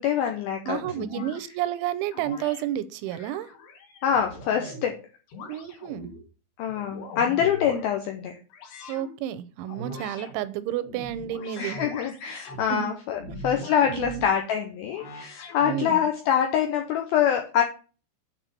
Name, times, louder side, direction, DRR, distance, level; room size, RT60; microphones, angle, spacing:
voice 1, 0.0-1.3 4.0-5.0 6.6-8.4 11.6-17.6, left 8 dB, 85° left, 4 dB, 2.1 m, -25 dB
sound 1, 0.7-1.4 2.1-2.6 3.1-4.9 5.3-6.2 6.7-7.8 8.5-9.1 9.7-10.3 10.8-12.6 13.1-14.4 14.9-16.2, left 1 dB, 65° left, 3.7 m, -41 dB
voice 2, 0.7-3.5 5.5-6.1 8.9-11.8 12.7-12.9 13.9-14.3 15.6-16.1, right 11 dB, 85° right, 15 dB, 2.9 m, -31 dB
8.9 x 4.3 x 6.6 m, 0.37 s
omnidirectional pair, 5.3 m